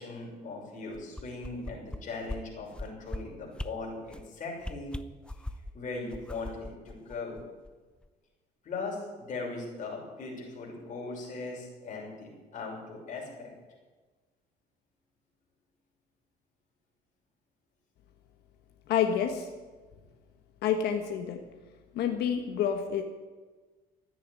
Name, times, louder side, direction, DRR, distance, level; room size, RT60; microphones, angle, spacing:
voice 1, 0.0-4.9 5.7-7.4 8.6-13.5, left 3 dB, 50° left, -2 dB, 6.4 m, -39 dB
sound 1, 0.9-2.0 2.3-2.4 2.7-3.2 3.5-3.7 4.1-4.3 4.6-5.7 6.1-7.7 8.0-8.1, left 1 dB, 5° left, 0.7 m, -38 dB
voice 2, 18.9-19.5 20.6-21.4 21.9-23.0, left 8 dB, 75° left, 5 dB, 1.4 m, -28 dB
14.0 x 9.6 x 9.7 m, 1.3 s
cardioid pair, 110°, 17 cm